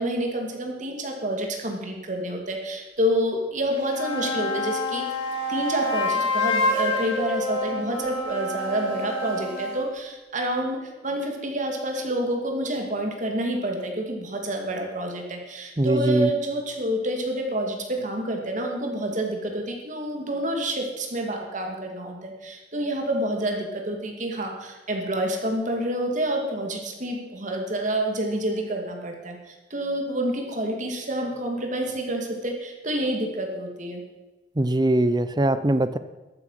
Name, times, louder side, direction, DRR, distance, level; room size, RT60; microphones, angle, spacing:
voice 1, 0.0-5.1 5.5-34.0, right 1 dB, 45° right, 2 dB, 2.6 m, -28 dB
sound 1, 3.7-9.9, left 2 dB, 30° left, 4.9 m, -28 dB
voice 2, 15.8-16.3 34.6-36.0, right 1 dB, 25° right, 13 dB, 0.6 m, -21 dB
13.5 x 13.0 x 5.8 m, 1.1 s
head